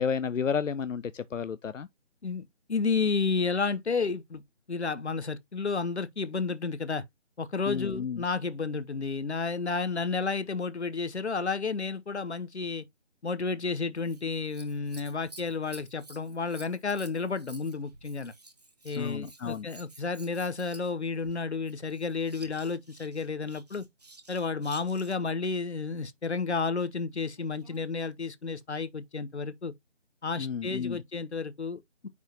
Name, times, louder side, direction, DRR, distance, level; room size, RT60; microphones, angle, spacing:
voice 1, 0.0-1.9 7.7-8.2 19.0-19.7 30.4-31.0, left 6 dB, 90° left, 0.5 m, -31 dB
voice 2, 2.2-4.4 4.7-7.0 7.4-12.8 13.2-18.3 18.8-23.8 24.3-29.7 30.2-32.1, left 4 dB, 65° left, 0.9 m, -31 dB
Scissors, 14.0-25.3 27.3-27.9 28.6-28.7, right 2 dB, 35° right, 1.0 m, -53 dB
9.4 x 3.6 x 2.8 m
figure-of-eight pair, 155°, 37 cm